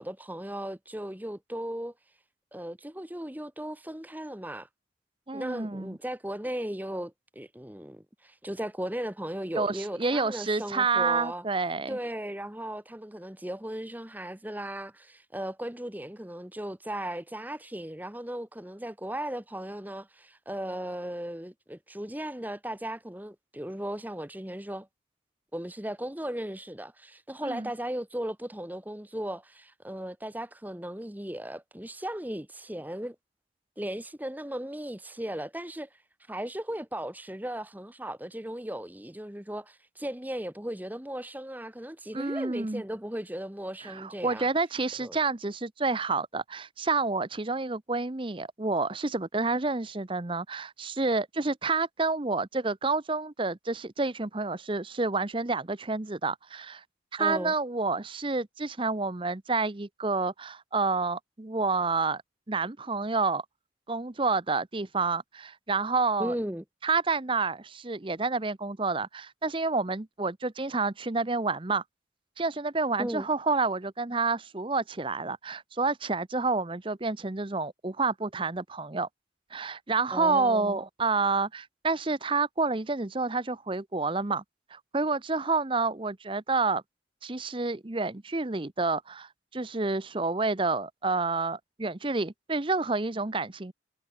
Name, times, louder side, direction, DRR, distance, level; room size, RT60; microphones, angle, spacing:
voice 1, 0.0-1.9 2.5-4.7 5.3-11.4 11.9-24.9 25.5-33.1 33.8-35.9 36.3-44.5 45.0-45.2 57.2-57.5 66.2-66.6 73.0-73.3 80.1-80.8, right 1 dB, 10° right, 1.2 m, -36 dB
voice 2, 5.3-6.0 9.5-12.0 27.4-27.7 42.1-42.8 43.8-56.8 57.1-62.2 62.5-63.4 63.9-66.3 66.8-71.8 72.4-79.1 79.5-84.4 84.7-86.8 87.2-93.7, right 3 dB, 25° right, 0.8 m, -29 dB
head